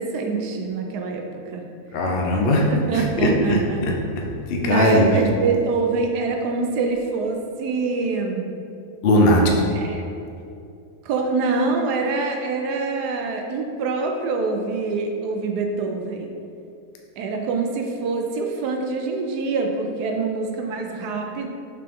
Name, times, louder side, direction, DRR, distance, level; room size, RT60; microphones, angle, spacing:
voice 1, 0.0-1.6 2.7-3.8 4.6-8.5 9.7-10.0 11.0-16.3 17.2-21.5, right 4 dB, 80° right, 3 dB, 1.3 m, -25 dB
voice 2, 1.9-2.7 2.9-3.6 4.5-5.1 9.0-9.6, left 1 dB, 55° left, 0 dB, 0.7 m, -18 dB
5.9 x 4.7 x 3.6 m, 2.6 s
omnidirectional pair, 1.7 m